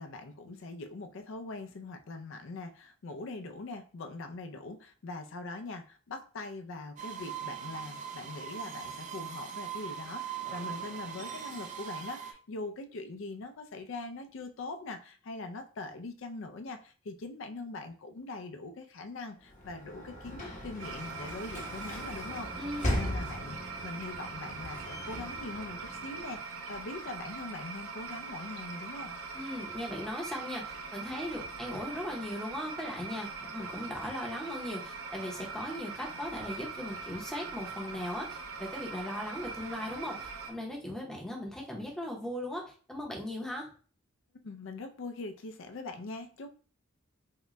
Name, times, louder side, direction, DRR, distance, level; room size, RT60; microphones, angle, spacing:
voice 1, 0.0-29.1 44.4-46.5, left 3 dB, 60° left, 6 dB, 0.4 m, -42 dB
sound 1, 7.0-12.3, right 8 dB, 35° right, 0.4 m, -40 dB
Sliding door / Slam, 19.4-26.4, equal, 35° left, 0.9 m, -39 dB
sound 2, 20.8-40.5, right 4 dB, 90° right, 0.7 m, -42 dB
voice 2, 22.6-23.1 29.3-43.7, left 1 dB, 5° left, -2 dB, 0.7 m, -38 dB
3.7 x 2.2 x 3.0 m, 0.40 s
head